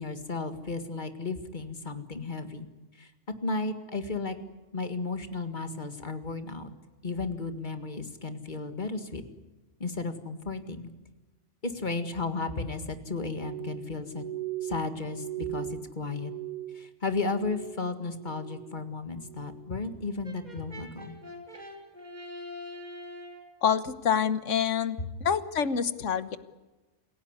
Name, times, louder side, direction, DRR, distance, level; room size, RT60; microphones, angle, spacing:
voice 1, 0.0-2.7 3.0-3.1 3.4-4.4 4.7-6.7 7.0-9.2 9.8-10.9 11.6-14.2 14.6-16.3 16.7-21.2, left 3 dB, 40° left, 8 dB, 2.0 m, -34 dB
Glass, 13.3-17.9 18.1-18.8 19.2-19.7 20.3-20.6, right 13 dB, 15° left, 4.2 m, -39 dB
Brass instrument, 20.2-23.6, left 1 dB, 35° right, 3.7 m, -44 dB
voice 2, 23.6-26.4, left 7 dB, 85° left, 13 dB, 1.5 m, -27 dB
27.0 x 17.0 x 9.8 m, 1.1 s
omnidirectional pair, 1.2 m